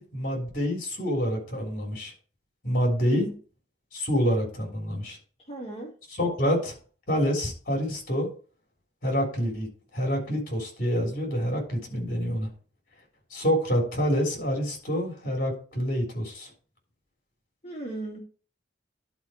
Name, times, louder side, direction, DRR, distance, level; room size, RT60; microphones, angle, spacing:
voice 1, 0.0-2.1 2.6-3.3 3.9-5.2 6.1-6.7 7.1-8.3 9.0-9.7 9.9-12.5 13.3-16.5, equal, 50° left, 0 dB, 3.4 m, -27 dB
voice 2, 5.5-5.9 17.6-18.2, right 2 dB, 35° left, -1 dB, 2.0 m, -36 dB
11.0 x 4.6 x 4.3 m, 0.39 s
head